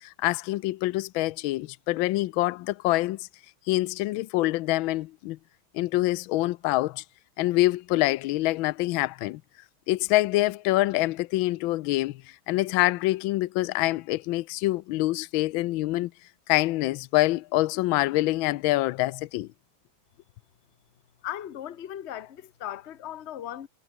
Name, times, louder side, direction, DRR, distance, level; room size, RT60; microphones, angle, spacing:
voice 1, 0.0-3.2 3.7-5.4 5.7-7.0 7.4-9.4 9.9-12.2 12.5-16.1 16.5-19.5, left 17 dB, 85° left, 1.4 m, -25 dB
voice 2, 21.2-23.7, left 11 dB, 45° left, 1.0 m, -37 dB
omnidirectional pair, 2.2 m